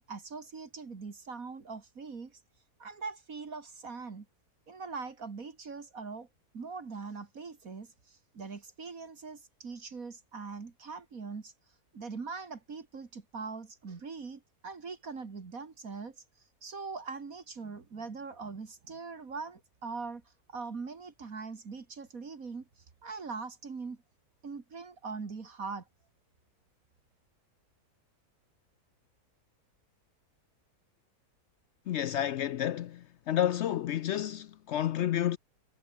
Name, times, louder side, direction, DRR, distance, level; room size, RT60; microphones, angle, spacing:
voice 1, 0.0-2.4 2.8-4.3 4.7-6.3 6.5-11.5 11.9-16.2 16.6-20.2 20.5-24.0 24.4-25.9, right 4 dB, 60° right, 2.6 m, -42 dB
voice 2, 31.9-35.4, left 11 dB, 70° left, 0.6 m, -30 dB
omnidirectional pair, 1.6 m